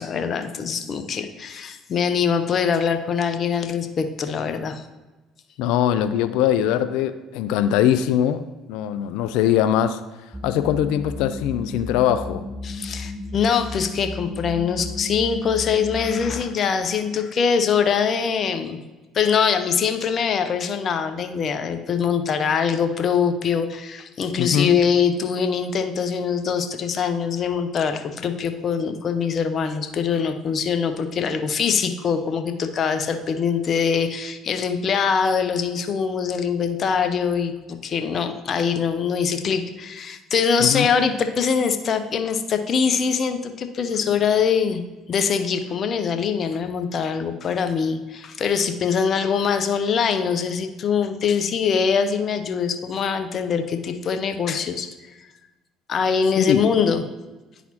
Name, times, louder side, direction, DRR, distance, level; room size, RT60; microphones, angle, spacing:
voice 1, 0.0-4.8 12.6-18.8 19.1-44.8 45.1-54.9 55.9-57.0, left 6 dB, 50° left, 8 dB, 0.7 m, -23 dB
voice 2, 5.6-10.0 10.4-12.4 24.4-24.7 40.6-40.9 56.4-56.7, left 10 dB, 75° left, 11 dB, 0.3 m, -21 dB
sound 1, 10.3-16.4, left 2 dB, 10° right, 0.4 m, -34 dB
10.5 x 4.1 x 2.9 m, 1.2 s
hypercardioid pair, 65°, 0 cm